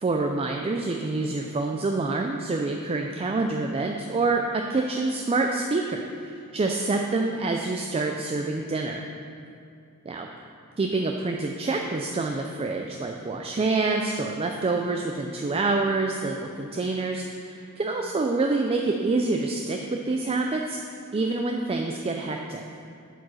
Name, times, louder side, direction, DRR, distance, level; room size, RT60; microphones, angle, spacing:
voice 1, 0.0-9.0 10.1-10.3 10.8-20.8 21.1-22.6, right 3 dB, 25° right, 2 dB, 0.4 m, -27 dB
7.8 x 4.9 x 6.2 m, 2.6 s
head